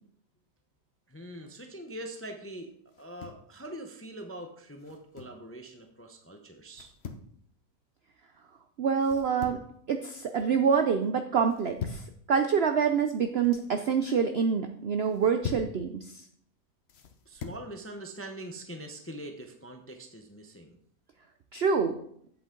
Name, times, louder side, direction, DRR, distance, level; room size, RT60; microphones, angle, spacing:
voice 1, 1.1-2.7 3.0-6.9 17.3-20.8, right 1 dB, 15° left, 4 dB, 0.4 m, -43 dB
sound 1, 2.9-3.5 4.8-5.4 6.7-7.3 9.0-9.8 10.1-10.6 11.5-12.1 13.2-13.7 15.0-15.8 16.9-17.7, left 6 dB, 50° left, 0.9 m, -41 dB
voice 2, 8.8-9.6 9.9-12.0 12.3-16.0 21.5-22.0, right 6 dB, 65° right, 7 dB, 0.6 m, -26 dB
8.1 x 7.9 x 3.8 m, 0.66 s
omnidirectional pair, 1.7 m